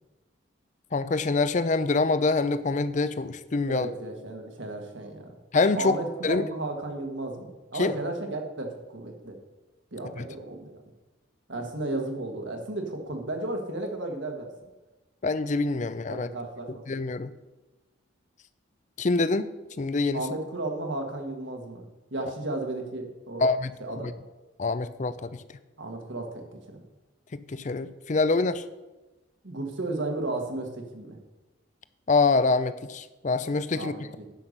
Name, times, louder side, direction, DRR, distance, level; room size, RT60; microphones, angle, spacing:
voice 1, 0.9-3.9 5.5-6.0 6.2-6.5 7.7-7.9 10.2-10.3 15.2-16.3 16.7-17.3 19.0-19.5 19.8-20.3 23.4-23.7 24.0-24.1 24.6-25.3 27.3-28.6 32.1-34.1, left 3 dB, 35° left, 13 dB, 0.5 m, -25 dB
voice 2, 3.7-5.3 5.8-9.4 9.9-10.8 11.5-14.5 16.1-16.8 20.1-21.8 22.1-23.4 23.8-24.1 25.8-26.8 29.4-31.2 33.7-34.0, right 2 dB, 70° right, 3 dB, 1.7 m, -34 dB
10.0 x 5.7 x 6.6 m, 1.1 s
head